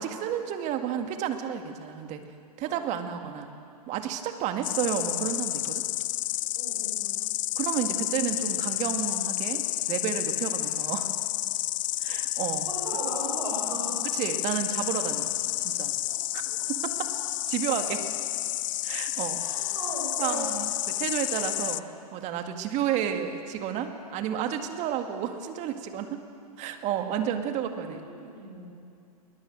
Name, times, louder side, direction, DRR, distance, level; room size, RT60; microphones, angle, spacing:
voice 1, 0.0-2.2 2.6-3.5 3.9-5.8 7.6-11.1 12.0-12.7 14.1-15.3 15.6-15.9 16.3-17.1 17.5-18.0 18.8-19.4 20.2-21.8 22.1-26.2 26.6-28.1, right 9 dB, 35° right, 6 dB, 2.0 m, -31 dB
voice 2, 2.6-3.0 6.5-7.1 12.7-14.0 16.1-16.2 19.4-20.5 27.2-28.7, right 2 dB, 80° right, -4 dB, 6.3 m, -37 dB
Insect, 4.6-21.8, left 17 dB, 55° left, 0.5 m, -30 dB
20.5 x 20.5 x 7.6 m, 2.5 s
hypercardioid pair, 115°, 20 cm